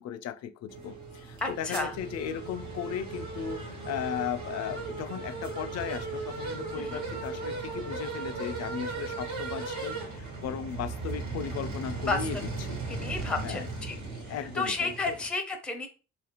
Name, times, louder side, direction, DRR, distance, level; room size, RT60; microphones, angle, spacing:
voice 1, 0.0-12.8 13.4-13.7 14.3-15.2, left 9 dB, 60° left, 0.4 m, -36 dB
sound 1, 0.7-15.3, right 3 dB, 75° right, 1.4 m, -37 dB
voice 2, 1.4-1.9 6.7-7.0 12.1-12.3 12.9-14.0 14.5-15.9, left 3 dB, 5° left, 0.5 m, -31 dB
2.7 x 2.5 x 2.9 m
cardioid pair, 90°, 30 cm